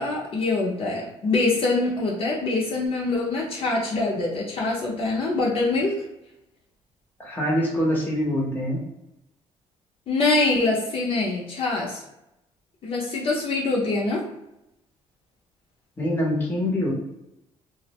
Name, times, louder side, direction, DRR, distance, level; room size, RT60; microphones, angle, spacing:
voice 1, 0.0-5.9 10.1-12.0 12.8-14.2, left 3 dB, 50° left, -3 dB, 0.6 m, -24 dB
voice 2, 7.2-8.8 16.0-16.9, equal, 15° left, -3 dB, 0.7 m, -24 dB
2.5 x 2.0 x 2.8 m, 0.86 s
cardioid pair, 135°, 12 cm